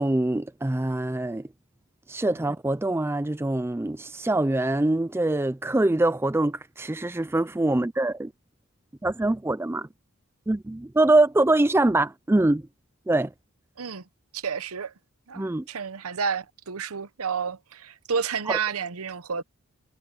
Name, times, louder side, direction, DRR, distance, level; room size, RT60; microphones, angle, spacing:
voice 1, 0.0-1.5 2.1-8.3 9.0-9.9 10.5-12.6 13.1-13.3 15.4-15.6 18.5-18.6, right 2 dB, 10° right, 0.3 m, -24 dB
voice 2, 14.3-14.9 15.3-19.4, right 6 dB, 75° right, 0.9 m, -30 dB
head